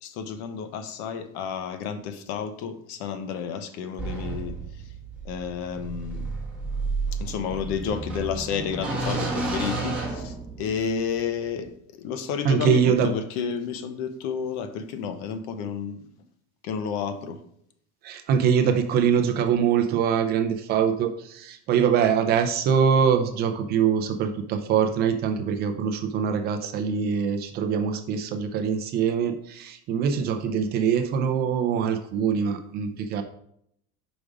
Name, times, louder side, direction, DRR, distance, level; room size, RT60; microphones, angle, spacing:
voice 1, 0.0-4.5 5.2-6.3 7.1-16.0 16.6-17.4, left 7 dB, 60° left, 9 dB, 0.7 m, -31 dB
sound 1, 4.0-10.9, right 3 dB, 5° right, 1.4 m, -31 dB
voice 2, 12.4-13.1 18.0-33.2, right 7 dB, 30° right, 7 dB, 0.4 m, -23 dB
5.1 x 4.8 x 5.0 m, 0.70 s
cardioid pair, 180°, 31 cm